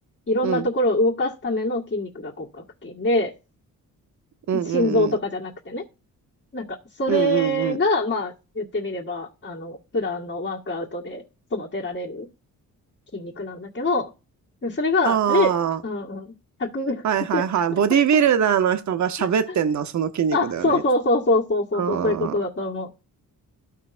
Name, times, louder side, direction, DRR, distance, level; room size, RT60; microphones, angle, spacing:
voice 1, 0.3-3.3 4.5-5.8 6.5-11.2 11.5-12.3 13.1-14.1 14.6-15.6 15.8-16.3 16.6-17.1 17.3-17.5 17.9-18.2 19.2-19.3 20.3-22.9, left 2 dB, 35° left, 1.7 m, -25 dB
voice 2, 4.5-5.1 7.1-7.8 15.0-15.8 17.0-20.8 21.8-22.3, right 8 dB, 55° right, 0.9 m, -22 dB
14.0 x 5.5 x 2.5 m
cardioid pair, 90°, 35 cm